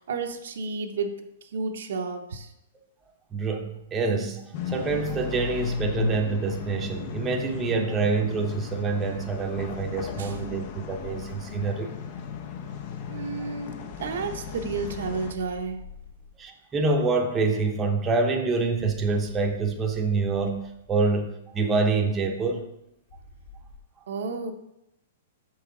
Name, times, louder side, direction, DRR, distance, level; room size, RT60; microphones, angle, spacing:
voice 1, 0.0-2.5 10.2-10.4 13.1-15.8 24.1-24.5, right 4 dB, 75° right, 5 dB, 0.8 m, -32 dB
voice 2, 3.3-11.9 16.4-20.6 20.9-22.6, right 4 dB, 15° right, 2 dB, 0.7 m, -26 dB
sound 1, 4.5-15.3, left 6 dB, 40° left, 0.6 m, -35 dB
sound 2, 13.9-16.5 18.7-21.3 23.1-23.8, left 4 dB, 55° left, 1.2 m, -46 dB
6.1 x 5.6 x 3.8 m, 0.82 s
hypercardioid pair, 150°, 0 cm